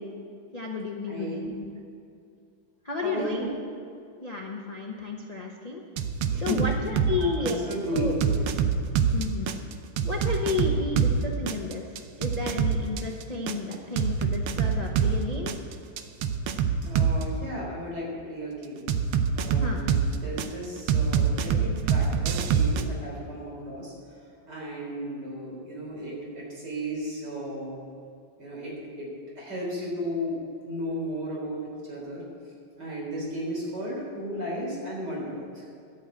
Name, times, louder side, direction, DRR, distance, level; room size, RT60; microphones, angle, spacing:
voice 1, 0.5-1.7 2.8-3.4 4.2-5.8 6.4-7.6 7.9-8.1 9.1-9.5 10.0-11.9 12.2-15.6 19.6-19.9, left 3 dB, 60° left, 0 dB, 0.4 m, -32 dB
voice 2, 3.0-3.5 6.3-6.7 7.2-8.4 16.8-18.9 19.3-23.9 24.5-27.8 28.4-29.1 29.3-30.4 30.6-32.2 32.8-35.7, equal, 50° right, -4 dB, 4.5 m, -34 dB
sound 1, 6.0-7.2 7.5-11.2 11.5-15.2 15.5-17.2 18.9-20.5 20.9-22.8, right 7 dB, 80° right, 1.6 m, -24 dB
13.0 x 7.3 x 8.2 m, 2.4 s
omnidirectional pair, 2.4 m